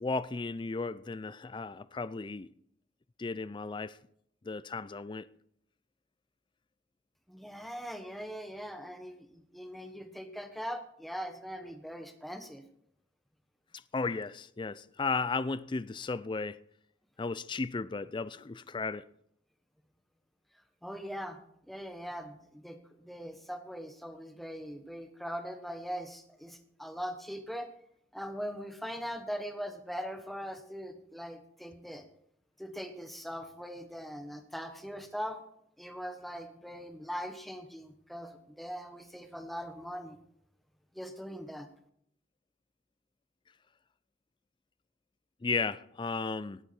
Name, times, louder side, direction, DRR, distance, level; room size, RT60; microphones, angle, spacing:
voice 1, 0.0-2.5 3.2-3.9 4.4-5.3 13.9-16.6 17.2-19.0 45.4-46.6, left 4 dB, 25° left, 0.4 m, -34 dB
voice 2, 7.3-12.6 20.8-21.4 21.7-27.7 28.1-32.0 32.6-35.4 35.8-40.2 40.9-41.7, equal, ahead, 1.2 m, -41 dB
18.5 x 8.1 x 4.4 m
head